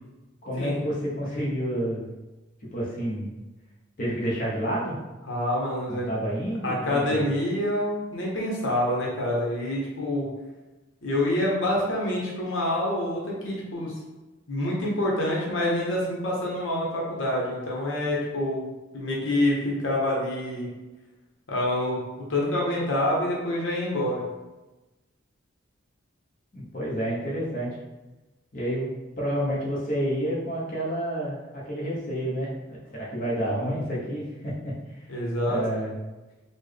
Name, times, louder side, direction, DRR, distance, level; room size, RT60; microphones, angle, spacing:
voice 1, 0.4-2.0 2.7-3.3 4.0-5.0 5.9-7.3 26.5-27.8 28.5-28.9 29.2-35.0 35.5-35.9, equal, 45° left, -6 dB, 0.8 m, -29 dB
voice 2, 5.3-6.1 6.6-10.3 11.0-13.9 14.5-20.7 21.5-22.0 22.3-24.2 35.1-35.6, left 1 dB, 80° left, -3 dB, 0.9 m, -27 dB
4.2 x 2.1 x 3.2 m, 1.1 s
head